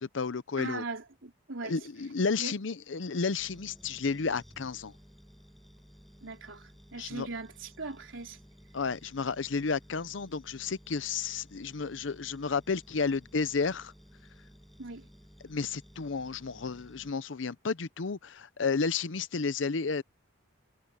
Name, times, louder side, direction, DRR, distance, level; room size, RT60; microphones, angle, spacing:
voice 1, 0.0-0.8 1.6-4.9 7.0-7.3 8.7-13.9 15.4-20.0, left 4 dB, 75° left, 0.7 m, -32 dB
voice 2, 0.6-1.7 2.4-2.5 6.2-8.4 14.8-15.1, right 3 dB, 90° right, 3.3 m, -39 dB
sound 1, 3.4-17.1, equal, ahead, 7.6 m, -56 dB
head